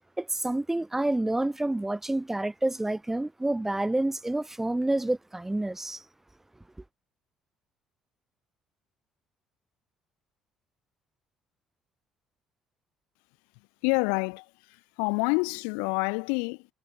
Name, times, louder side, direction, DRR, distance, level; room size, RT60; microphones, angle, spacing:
voice 1, 0.2-6.0, right 2 dB, 10° right, 5.3 m, -28 dB
voice 2, 13.8-14.5 15.0-16.7, left 40 dB or more, 65° left, 6.7 m, -27 dB
figure-of-eight pair, 50°, 3 cm